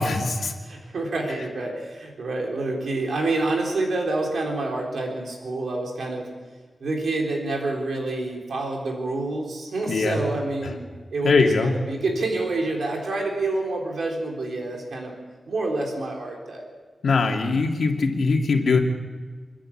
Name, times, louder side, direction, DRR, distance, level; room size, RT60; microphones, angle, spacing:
voice 1, 0.0-0.5 9.9-10.2 11.2-11.8 17.0-18.8, left 4 dB, 80° left, 1 dB, 2.4 m, -21 dB
voice 2, 0.6-6.3 6.8-10.8 11.1-15.1 15.5-16.7, right 2 dB, 85° right, 0 dB, 3.8 m, -27 dB
29.0 x 10.5 x 8.7 m, 1.5 s
wide cardioid pair, 150°, 0 cm